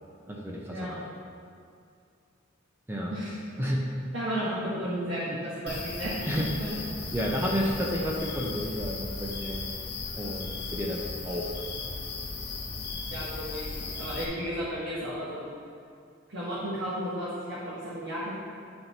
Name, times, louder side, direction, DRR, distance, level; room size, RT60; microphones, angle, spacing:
voice 1, 0.3-1.0 2.9-3.1 3.6-3.8 5.3-5.4 5.6-5.7 6.3-6.6 7.1-9.7 10.1-11.5, equal, 10° right, -3 dB, 0.6 m, -31 dB
voice 2, 3.1-3.6 4.1-6.8 13.1-15.4 16.3-18.3, equal, 70° right, -10 dB, 1.5 m, -34 dB
sound 1, 5.7-14.2, left 3 dB, 55° left, 0.8 m, -36 dB
9.1 x 4.4 x 4.0 m, 2.3 s
head